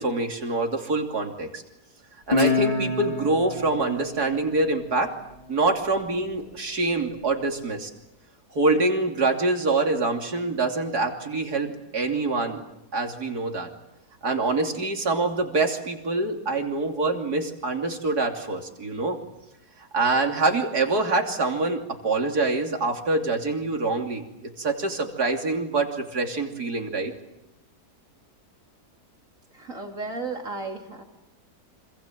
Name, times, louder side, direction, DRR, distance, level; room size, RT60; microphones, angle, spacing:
voice 1, 0.0-1.6 2.3-5.1 5.5-7.9 8.5-12.6 12.9-13.7 14.2-19.2 19.8-24.2 24.6-27.1, right 3 dB, 70° right, 3 dB, 3.6 m, -25 dB
Guitar, 2.3-5.5, left 3 dB, 20° left, 2.7 m, -28 dB
voice 2, 29.5-31.0, right 3 dB, 50° right, 3 dB, 3.3 m, -34 dB
27.0 x 26.5 x 7.5 m, 0.89 s
omnidirectional pair, 1.7 m